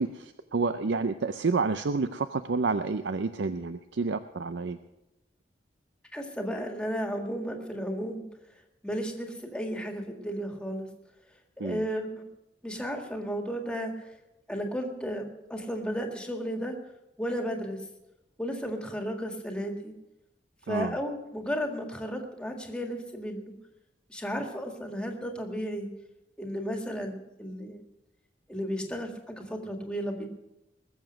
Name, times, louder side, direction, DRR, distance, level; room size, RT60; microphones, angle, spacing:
voice 1, 0.0-4.8 11.6-11.8 20.7-21.0, right 4 dB, 85° right, 10 dB, 0.5 m, -29 dB
voice 2, 6.1-8.3 8.8-10.9 11.6-12.2 12.6-14.1 14.5-16.8 17.2-17.8 18.4-19.9 20.7-23.5 24.1-25.9 26.4-27.8 28.5-30.3, equal, 5° left, 3 dB, 1.8 m, -34 dB
20.5 x 7.2 x 6.3 m, 0.93 s
head